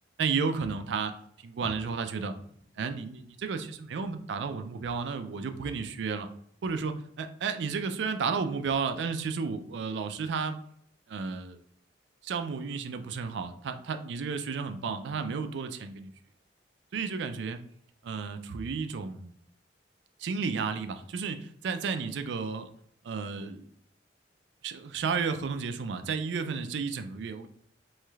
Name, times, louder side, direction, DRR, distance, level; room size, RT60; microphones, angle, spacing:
voice 1, 0.2-1.1 1.4-2.3 2.8-6.3 6.6-10.6 11.1-11.6 12.2-16.1 16.9-17.6 18.0-19.3 20.2-22.7 23.0-23.7 24.6-27.5, right 5 dB, 80° right, 9 dB, 0.4 m, -32 dB
sound 1, 1.6-5.6, left 1 dB, 80° left, 0.6 m, -53 dB
3.1 x 3.1 x 2.3 m, 0.66 s
head